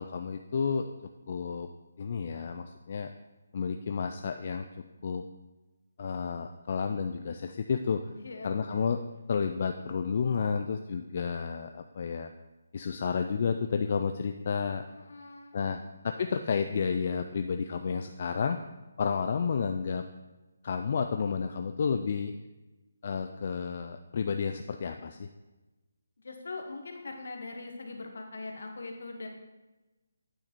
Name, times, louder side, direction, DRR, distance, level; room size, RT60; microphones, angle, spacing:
voice 1, 0.0-1.7 2.0-3.1 3.5-5.2 6.0-8.1 8.4-9.0 9.3-12.3 12.7-14.8 15.5-15.8 16.0-18.6 19.0-20.0 20.6-22.3 23.0-25.3, left 6 dB, 45° left, 6 dB, 0.3 m, -31 dB
voice 2, 8.2-9.0 14.9-15.8 26.2-29.3, left 3 dB, 70° left, 4 dB, 1.2 m, -42 dB
9.0 x 4.0 x 4.4 m, 1.1 s
hypercardioid pair, 160°, 0 cm